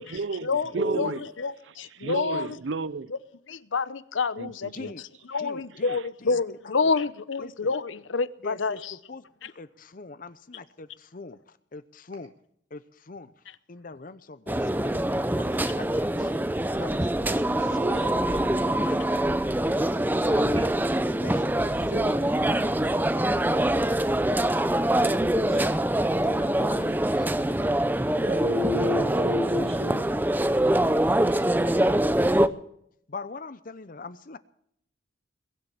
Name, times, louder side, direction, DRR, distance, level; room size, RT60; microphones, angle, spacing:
voice 1, 0.0-1.2 1.6-3.1 4.4-4.9 5.3-5.4 5.8-6.1, right 4 dB, 80° right, 0.6 m, -34 dB
voice 2, 0.7-1.1 16.1-16.3 17.7-18.0 20.4-20.7 21.9-22.2 25.3-25.6 28.2-30.0 31.0-31.2, left 1 dB, 30° right, 4.0 m, -29 dB
voice 3, 1.4-2.5 3.5-4.9 5.3-8.9, left 4 dB, 85° left, 0.8 m, -28 dB
voice 4, 4.7-5.0 5.4-6.4 6.6-6.7 7.0-7.1 7.4-7.7 8.4-8.8 9.1-12.3 12.7-13.3 13.7-15.0 15.4-16.5 16.8-18.2 18.7-19.1 20.2-20.5 21.2-22.2 26.2-27.8 32.0-32.2 33.1-34.4, left 3 dB, 45° left, 0.7 m, -43 dB
sound 1, 14.5-32.5, right 1 dB, 10° right, 0.6 m, -24 dB
22.0 x 7.6 x 8.4 m
head